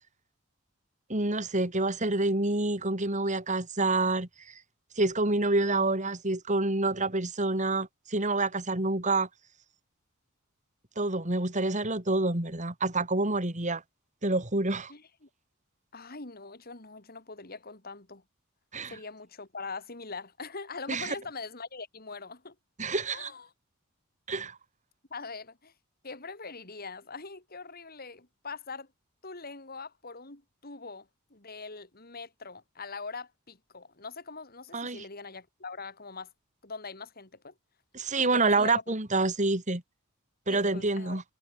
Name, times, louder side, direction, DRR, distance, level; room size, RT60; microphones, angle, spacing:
voice 1, 1.1-4.3 5.0-9.3 11.0-13.8 14.2-14.9 18.7-18.9 20.9-21.1 22.8-23.3 24.3-24.6 34.7-35.0 37.9-39.8 40.5-41.2, right 2 dB, 35° right, 3.3 m, -27 dB
voice 2, 14.9-15.3 15.9-18.2 18.9-22.6 23.1-23.5 25.1-25.7 26.0-28.9 29.2-36.3 36.6-37.5 38.2-38.8 40.5-41.2, left 4 dB, 45° left, 3.6 m, -42 dB
head